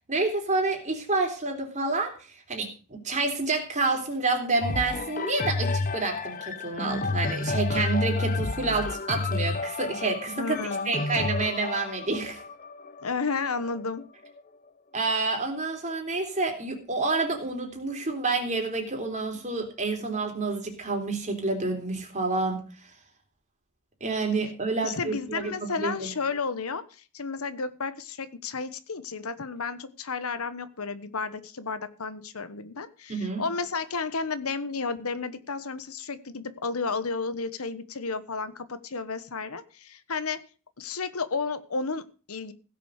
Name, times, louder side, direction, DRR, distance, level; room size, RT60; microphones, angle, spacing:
voice 1, 0.1-2.1 2.5-10.6 10.9-12.4 14.9-22.6 24.0-26.1 33.1-33.4, right 3 dB, 35° right, 2 dB, 3.6 m, -28 dB
sound 1, 4.6-14.4 15.0-15.1, left 3 dB, 40° left, 0.8 m, -30 dB
voice 2, 10.4-10.9 13.0-14.0 24.8-40.4 40.8-42.5, left 4 dB, 85° left, 13 dB, 1.1 m, -32 dB
16.0 x 6.9 x 6.5 m, 0.37 s
head